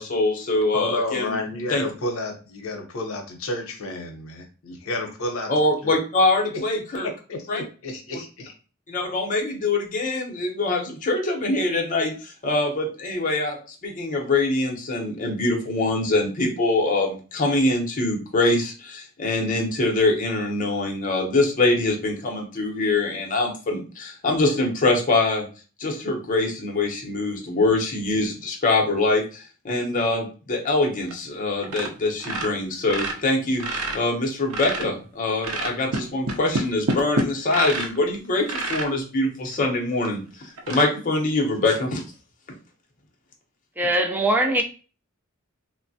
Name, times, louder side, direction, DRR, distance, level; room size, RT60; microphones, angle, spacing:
voice 1, 0.0-1.4 1.7-1.8 5.5-7.1 7.5-7.6 8.9-13.6 13.8-25.5 25.8-42.0, left 2 dB, 40° left, 0.7 m, -24 dB
voice 2, 0.7-5.5 5.8-5.9 7.0-8.5, left 2 dB, 75° left, 0.7 m, -31 dB
sound 1, 31.0-31.4 31.6-31.9 32.2-35.0 35.4-38.1 38.4-38.9 39.5-39.6 40.0-40.1 40.6-40.8, right 2 dB, 85° right, 0.5 m, -28 dB
voice 3, 43.8-44.6, right 1 dB, 10° right, 0.4 m, -21 dB
3.1 x 2.1 x 2.6 m
head